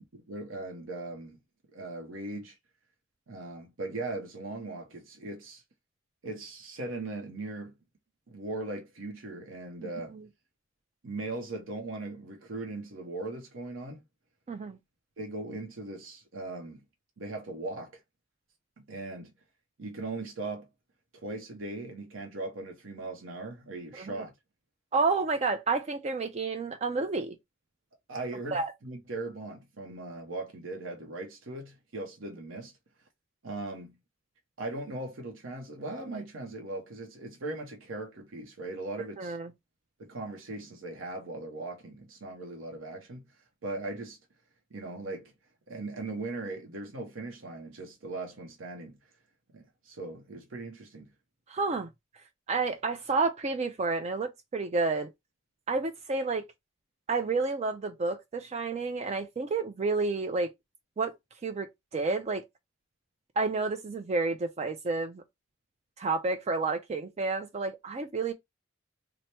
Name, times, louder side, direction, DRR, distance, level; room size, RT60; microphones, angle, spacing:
voice 1, 0.1-1.4 1.7-2.6 3.3-5.6 6.2-7.7 8.3-10.1 11.0-14.0 15.2-16.8 17.2-18.0 18.8-19.3 19.8-20.7 21.1-24.3 28.1-32.7 33.4-34.0 34.6-39.4 40.0-43.2 43.6-44.2 44.7-45.3 45.7-49.0 49.5-51.1, right 2 dB, 75° right, 0.7 m, -39 dB
voice 2, 14.5-14.8 24.0-24.2 24.9-27.4 28.5-28.7 39.2-39.5 51.5-51.9 52.5-55.1 55.7-56.5 57.1-60.5 61.0-61.1 61.4-62.4 63.4-65.2 66.0-68.3, right 3 dB, 35° right, 0.4 m, -30 dB
3.2 x 2.1 x 4.2 m
head